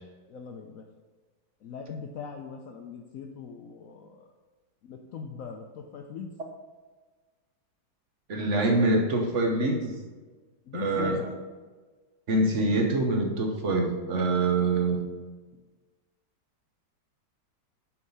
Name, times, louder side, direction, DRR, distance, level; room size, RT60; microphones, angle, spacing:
voice 1, 0.3-0.9 1.6-4.3 4.8-6.3 10.7-11.3, left 6 dB, 75° left, 3 dB, 0.7 m, -40 dB
voice 2, 8.3-9.9 10.7-11.3 12.3-15.0, right 2 dB, 50° right, 2 dB, 1.0 m, -25 dB
7.3 x 4.8 x 5.4 m, 1.4 s
omnidirectional pair, 2.1 m